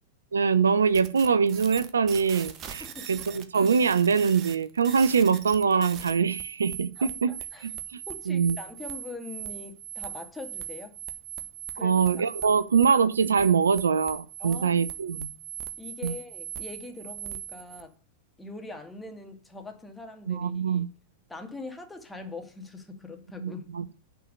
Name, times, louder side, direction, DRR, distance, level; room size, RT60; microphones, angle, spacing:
voice 1, 0.3-7.3 7.6-8.0 8.3-8.6 11.8-15.3 16.0-16.2 20.3-20.9 23.4-23.8, right 6 dB, 75° right, 0.6 m, -23 dB
sound 1, 0.9-17.8, right 10 dB, 35° right, 1.5 m, -40 dB
voice 2, 2.8-3.2 7.0-7.8 8.1-11.0 11.7-12.6 14.4-14.9 15.8-17.9 18.4-20.9 21.3-23.7, left 3 dB, 5° left, 2.3 m, -42 dB
10.0 x 4.7 x 7.8 m
figure-of-eight pair, 95°, 0 cm